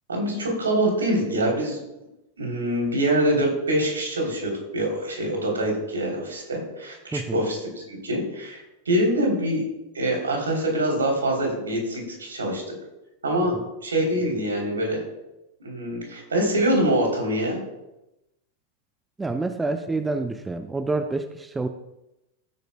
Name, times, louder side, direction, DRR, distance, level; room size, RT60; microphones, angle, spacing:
voice 1, 0.1-1.8 2.4-7.6 7.9-9.6 9.9-12.6 13.2-13.5 13.8-15.0 15.6-17.6, right 1 dB, 70° right, 0 dB, 3.2 m, -24 dB
voice 2, 7.1-7.4 13.4-13.7 19.2-21.7, right 3 dB, 10° right, 9 dB, 0.5 m, -28 dB
16.5 x 9.1 x 2.2 m, 0.92 s
figure-of-eight pair, 90°, 0 cm